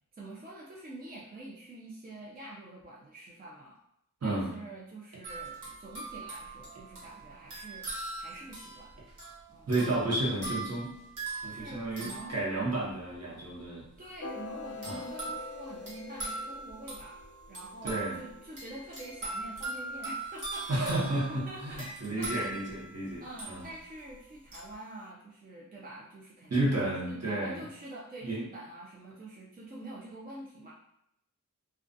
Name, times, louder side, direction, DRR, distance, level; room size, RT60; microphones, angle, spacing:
voice 1, 0.1-3.8 4.2-7.9 8.2-8.9 9.5-9.7 11.3-12.5 14.0-17.2 17.5-21.0 21.3-22.7 23.2-30.7, right 1 dB, 30° right, -5 dB, 0.4 m, -46 dB
sound 1, 5.2-13.1 14.8-24.0 24.5-24.7, right 2 dB, 75° right, 1.1 m, -41 dB
voice 2, 9.7-10.9 11.4-13.8 14.8-15.1 17.8-18.2 20.7-23.6 26.5-27.6 28.2-28.4, right 2 dB, 50° right, -5 dB, 0.9 m, -31 dB
sound 2, 14.2-20.3, left 4 dB, 50° left, 0.5 m, -46 dB
2.3 x 2.3 x 2.5 m, 0.77 s
wide cardioid pair, 90°, 32 cm